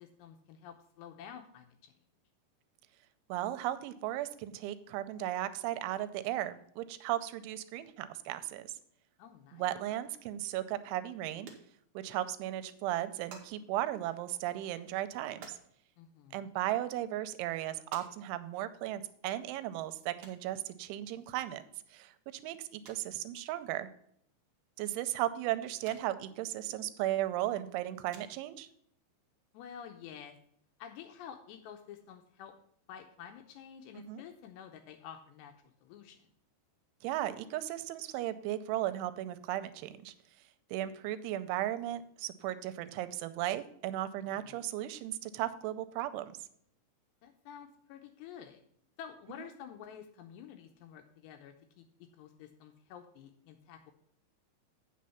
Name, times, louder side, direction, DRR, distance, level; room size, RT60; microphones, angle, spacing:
voice 1, 0.0-1.9 9.2-9.7 16.0-16.6 29.5-30.4 30.8-32.6 32.9-35.5 35.8-36.3 44.2-44.6 47.2-48.6 49.0-53.9, left 8 dB, 80° left, 6 dB, 2.6 m, -50 dB
voice 2, 3.3-8.7 9.5-11.5 12.0-15.6 16.3-21.6 21.9-22.1 22.4-23.9 24.8-28.7 34.1-34.2 37.0-40.1 40.7-46.4, right 13 dB, 85° right, 12 dB, 3.0 m, -36 dB
sound 1, 11.5-12.3 12.5-12.6 12.9-13.5 14.0-15.6 16.5-16.6 17.1-17.2 17.9-18.1 18.4-18.5 20.2-20.4 21.6-21.7 22.1-22.2 22.4-22.5 22.9-23.1 24.5-24.6 25.0-25.1 25.9-26.0 26.3-26.4 27.6-27.8 28.1-28.5 29.5-29.6 29.7-29.8 30.0-30.1, right 5 dB, 70° right, 1.8 m, -53 dB
8.5 x 6.2 x 5.6 m, 0.68 s
omnidirectional pair, 5.4 m